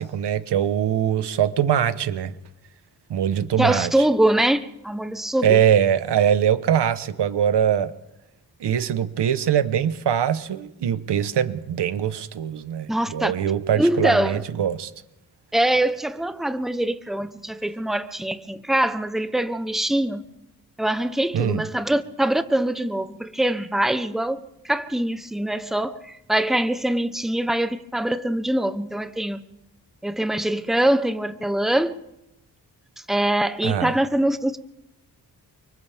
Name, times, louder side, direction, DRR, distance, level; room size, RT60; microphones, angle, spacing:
voice 1, 0.0-2.3 3.1-3.9 5.4-7.9 8.6-14.9 21.3-21.6 33.6-33.9, right 9 dB, 90° right, 1.2 m, -22 dB
voice 2, 3.6-4.6 4.8-5.6 12.9-13.3 13.8-14.4 15.5-20.2 20.8-29.4 30.0-32.0 33.1-34.6, right 1 dB, ahead, 1.0 m, -23 dB
29.0 x 25.0 x 3.6 m
wide cardioid pair, 110°, 40 cm